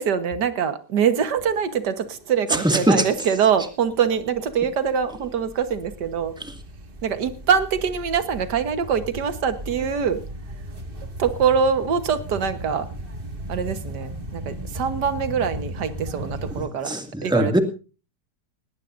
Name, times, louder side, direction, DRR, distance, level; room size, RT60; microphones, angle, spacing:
voice 1, 0.0-6.4 7.0-10.2 11.2-12.9 13.5-17.0 17.2-17.6, right 7 dB, 85° right, 11 dB, 1.8 m, -24 dB
sound 1, 1.1-16.7, right 1 dB, 35° right, 2.1 m, -37 dB
voice 2, 2.5-3.1 16.6-17.6, right 1 dB, 5° right, 6 dB, 1.9 m, -21 dB
19.0 x 18.5 x 2.6 m, 0.34 s
omnidirectional pair, 1.8 m